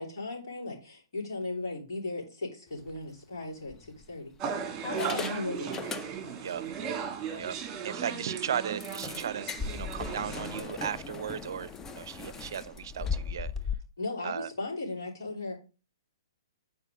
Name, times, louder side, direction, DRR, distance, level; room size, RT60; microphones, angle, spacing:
voice 1, 0.0-4.3 4.8-5.8 14.0-15.6, left 2 dB, 65° left, 3.0 m, -36 dB
sound 1, 2.8-3.0 3.7-4.4 4.8-6.5 6.8-7.0 7.4-7.5 7.8-7.9 8.8-13.7, left 5 dB, 15° left, 0.5 m, -38 dB
sound 2, 4.4-10.6, right 6 dB, 25° right, 1.7 m, -36 dB
voice 2, 7.8-9.5 9.7-13.5 14.2-14.5, right 8 dB, 65° right, 0.5 m, -36 dB
8.1 x 4.6 x 3.6 m
hypercardioid pair, 125°, 2 cm